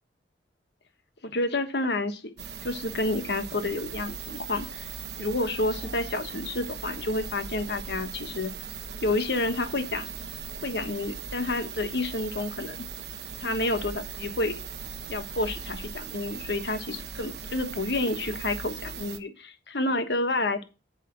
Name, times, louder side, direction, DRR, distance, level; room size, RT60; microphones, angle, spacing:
voice 1, 1.2-2.3 2.6-4.9 5.2-8.5 9.0-10.1 10.6-12.8 13.4-14.5 15.1-20.6, left 2 dB, 65° left, 8 dB, 1.3 m, -29 dB
sound 1, 2.4-19.2, right 6 dB, 65° right, 0.9 m, -39 dB
8.3 x 5.0 x 7.5 m, 0.30 s
head